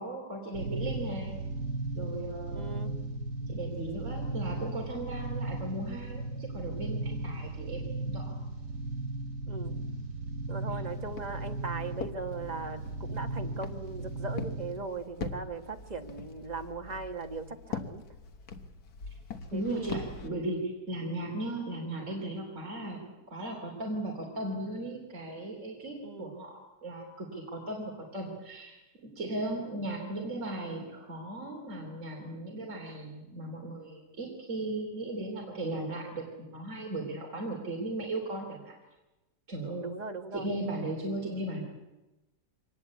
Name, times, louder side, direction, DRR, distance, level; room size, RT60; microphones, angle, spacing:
voice 1, 0.0-1.3 1.9-2.9 3.5-8.4 19.5-28.8 29.2-38.7 39.5-39.9 40.3-41.6, right 1 dB, 45° right, -1 dB, 3.9 m, -37 dB
sound 1, 0.5-14.7, right 2 dB, 70° right, 5.2 m, -36 dB
voice 2, 2.5-2.9 9.5-9.8 10.5-18.0 19.5-20.1 26.0-26.4 39.8-40.5, right 4 dB, 25° right, 6 dB, 1.4 m, -39 dB
Walk footsteps, 10.9-20.3, left 5 dB, 65° left, 1.8 m, -43 dB
24.5 x 19.5 x 8.4 m, 1.1 s
omnidirectional pair, 1.8 m